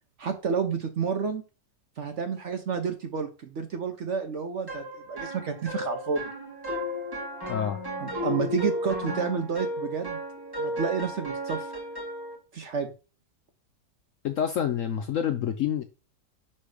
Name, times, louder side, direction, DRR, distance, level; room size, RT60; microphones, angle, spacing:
voice 1, 0.2-1.4 2.0-6.2 8.0-10.2 10.6-11.7 12.5-12.9, right 6 dB, 55° right, 6 dB, 0.9 m, -30 dB
sound 1, 4.7-12.4, left 1 dB, 15° right, 1.4 m, -34 dB
voice 2, 7.5-7.8 14.2-15.8, left 9 dB, 65° left, 7 dB, 0.8 m, -27 dB
6.4 x 3.3 x 4.9 m, 0.33 s
omnidirectional pair, 1.8 m